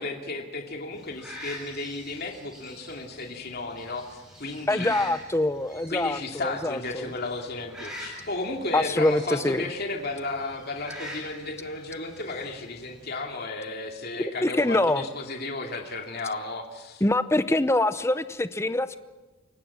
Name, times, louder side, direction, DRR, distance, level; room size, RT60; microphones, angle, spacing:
voice 1, 0.0-4.9 5.9-17.0, left 2 dB, 50° left, 3 dB, 2.6 m, -34 dB
sound 1, 0.9-13.2, left 1 dB, 5° right, 7.3 m, -45 dB
voice 2, 4.7-7.1 8.7-9.7 14.4-15.1 17.0-19.0, left 1 dB, 15° left, 12 dB, 0.7 m, -24 dB
29.0 x 17.0 x 7.4 m, 1.2 s
head